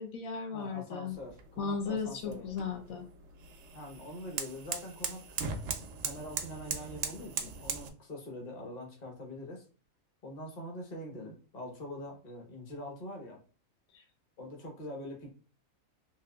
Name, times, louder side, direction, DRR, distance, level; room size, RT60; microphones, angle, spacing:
voice 1, 0.0-1.2 1.6-3.1 13.9-14.0, left 5 dB, 75° left, 5 dB, 1.0 m, -36 dB
voice 2, 0.5-2.5 3.7-5.4 6.0-9.6 10.2-13.4 14.4-15.4, left 1 dB, 35° left, 1 dB, 0.9 m, -44 dB
sound 1, 1.1-7.9, right 6 dB, 65° right, 0.7 m, -40 dB
3.6 x 2.7 x 2.3 m, 0.38 s
omnidirectional pair, 1.5 m